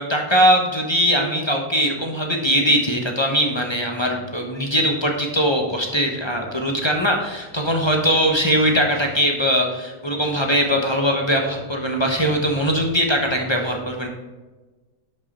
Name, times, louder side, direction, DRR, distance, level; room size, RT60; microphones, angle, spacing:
voice 1, 0.0-14.1, equal, 20° left, 1 dB, 0.8 m, -21 dB
11.5 x 5.6 x 4.3 m, 1.2 s
omnidirectional pair, 2.1 m